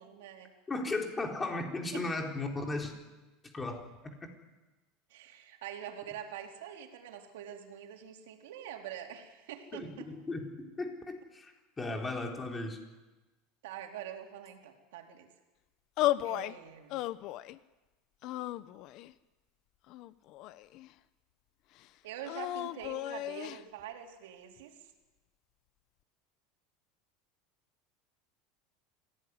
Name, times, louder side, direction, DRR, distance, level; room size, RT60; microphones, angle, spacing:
voice 1, 0.0-0.5 1.9-2.0 5.1-10.1 13.6-15.3 16.2-17.0 22.0-24.9, right 10 dB, 85° right, 3 dB, 4.0 m, -45 dB
voice 2, 0.7-2.9 3.4-4.3 9.7-12.8, left 2 dB, 15° left, 2 dB, 3.9 m, -36 dB
sound 1, 16.0-16.5 16.9-17.6 18.2-19.1 19.9-20.9 22.2-23.6, left 15 dB, 50° left, 0.9 m, -34 dB
26.5 x 17.5 x 9.8 m, 1.1 s
supercardioid pair, 140°, 0 cm